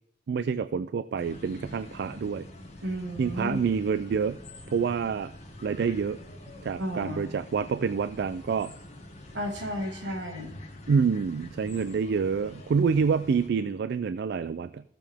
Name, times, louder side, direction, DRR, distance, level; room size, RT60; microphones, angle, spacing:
voice 1, 0.3-2.5 3.2-4.4 4.7-5.3 5.6-6.2 6.6-8.7 10.9-14.8, right 5 dB, 65° right, 15 dB, 0.3 m, -27 dB
sound 1, 1.1-13.5, left 1 dB, 40° left, 1.8 m, -46 dB
voice 2, 2.8-3.6 6.8-7.3 9.3-10.6, equal, 80° right, 4 dB, 1.9 m, -33 dB
15.5 x 7.0 x 3.5 m, 0.81 s
head